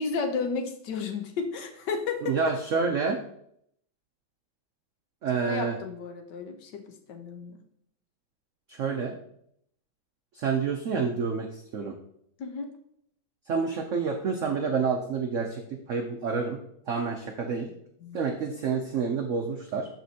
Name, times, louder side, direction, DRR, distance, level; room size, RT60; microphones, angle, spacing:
voice 1, 0.0-2.4 5.5-6.8 7.1-7.6 12.4-12.7 18.0-18.3, left 5 dB, 65° left, 5 dB, 1.3 m, -32 dB
voice 2, 2.2-3.2 5.2-5.8 8.7-9.1 10.4-11.9 13.5-16.6 16.9-17.7 18.1-19.9, right 5 dB, 80° right, 3 dB, 0.6 m, -28 dB
12.5 x 4.3 x 2.8 m, 0.72 s
omnidirectional pair, 2.1 m